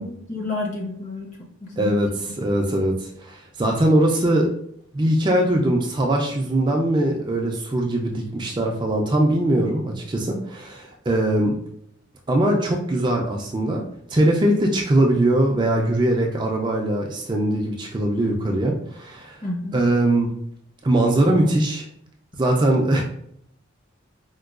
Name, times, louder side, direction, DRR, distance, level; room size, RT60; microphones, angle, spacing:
voice 1, 0.0-2.3 19.4-19.8, left 2 dB, 40° left, 0 dB, 0.7 m, -31 dB
voice 2, 1.8-2.1 2.4-4.5 4.9-11.5 12.3-13.8 14.1-19.4 19.7-20.3 20.8-21.9 22.4-23.0, right 1 dB, 20° right, 0 dB, 0.3 m, -21 dB
4.4 x 2.2 x 2.4 m, 0.68 s
head